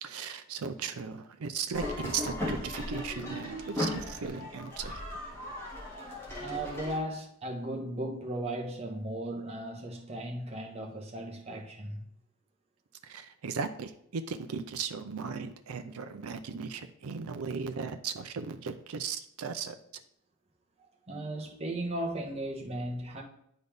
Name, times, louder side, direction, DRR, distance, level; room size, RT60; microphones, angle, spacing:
voice 1, 0.0-5.0 13.1-19.7, right 5 dB, 85° right, 0.5 m, -37 dB
sound 1, 1.7-7.0, left 1 dB, 10° left, 1.7 m, -37 dB
voice 2, 6.4-12.0 21.1-23.2, right 1 dB, 30° right, 1.1 m, -36 dB
10.0 x 4.0 x 3.4 m
head